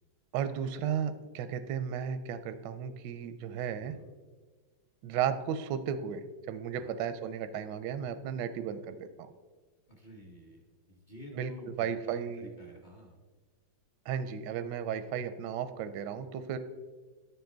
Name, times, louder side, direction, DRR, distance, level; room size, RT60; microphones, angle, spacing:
voice 1, 0.3-3.9 5.0-9.0 11.3-11.5 11.8-12.4 14.1-16.6, right 8 dB, 75° right, 11 dB, 1.1 m, -34 dB
voice 2, 3.8-4.1 6.8-6.9 9.9-10.6 10.9-13.2, equal, 35° left, 0 dB, 0.8 m, -50 dB
10.5 x 7.0 x 3.9 m, 1.4 s
omnidirectional pair, 2.2 m